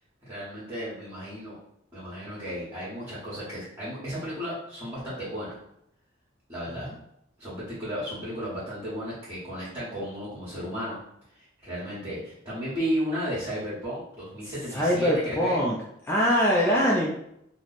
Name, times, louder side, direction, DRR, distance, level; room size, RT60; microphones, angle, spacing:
voice 1, 0.3-1.6 1.9-5.6 6.5-6.9 7.4-11.0 11.3-15.6, equal, 20° right, -11 dB, 1.2 m, -34 dB
voice 2, 14.7-15.7 16.1-17.1, equal, 10° left, -4 dB, 0.3 m, -23 dB
3.0 x 2.0 x 4.0 m, 0.78 s
head